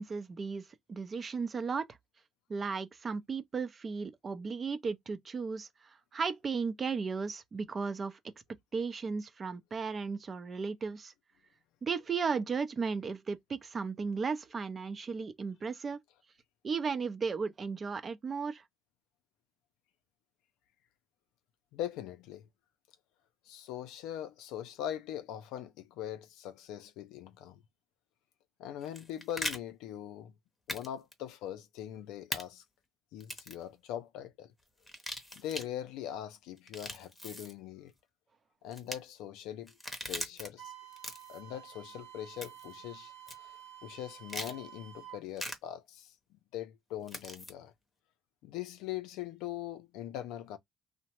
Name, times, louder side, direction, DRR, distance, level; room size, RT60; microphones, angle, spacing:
voice 1, 0.0-1.8 2.5-8.2 8.7-11.1 11.8-16.0 16.6-18.6, right 5 dB, 35° right, 0.5 m, -35 dB
voice 2, 21.7-22.5 23.5-27.6 28.6-30.3 30.7-32.6 33.1-34.5 35.3-37.9 38.6-39.7 40.0-40.7 41.3-43.1 43.4-43.5 43.8-47.7 48.4-50.6, left 11 dB, 90° left, 0.4 m, -41 dB
sound 1, 28.8-29.6 30.7-30.9 31.1-31.2 32.3-32.4 33.2-33.6 34.8-35.7 36.6-37.5 38.7-39.0 39.7-40.5 40.9-41.4 42.4-42.7 43.3-43.4 44.3-44.5 45.4-45.6 47.1-47.5, left 1 dB, 10° left, 0.8 m, -40 dB
Wind instrument woodwind instrument, 40.6-45.2, right 11 dB, 85° right, 0.7 m, -51 dB
2.8 x 2.1 x 2.9 m
cardioid pair, 100°, 0 cm